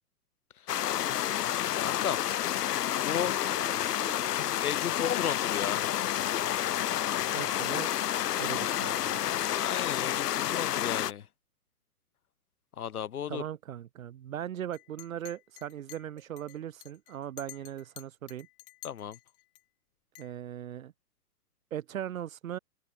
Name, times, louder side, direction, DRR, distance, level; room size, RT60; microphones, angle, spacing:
sound 1, 0.7-11.1, left 12 dB, 85° left, 0.7 m, -30 dB
voice 1, 1.8-2.2 3.0-3.3 4.6-6.1 9.5-11.3 12.8-13.4 18.8-19.2, left 9 dB, 70° left, 3.0 m, -34 dB
Dog, 3.3-5.2 5.8-6.6 8.9-9.7, right 7 dB, 10° right, 4.7 m, -53 dB
voice 2, 7.3-7.9 8.4-9.3 13.3-18.5 20.2-20.9 21.7-22.6, right 10 dB, 60° right, 2.4 m, -39 dB
Chink clink, 14.7-19.6 20.2-20.3, left 24 dB, 35° left, 7.5 m, -50 dB
hypercardioid pair, 145°, 46 cm